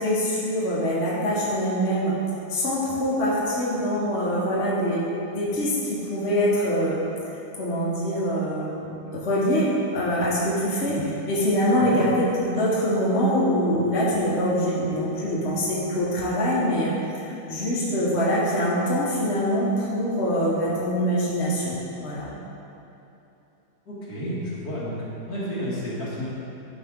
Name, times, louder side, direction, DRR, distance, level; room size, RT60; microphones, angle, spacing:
voice 1, 0.0-2.1 2.5-5.0 5.3-7.0 7.6-11.0 11.3-21.7 22.0-22.3, equal, 45° left, -7 dB, 1.7 m, -24 dB
voice 2, 23.9-25.0 25.3-26.3, equal, 90° left, -9 dB, 2.7 m, -31 dB
11.5 x 5.2 x 3.7 m, 2.9 s
omnidirectional pair, 1.6 m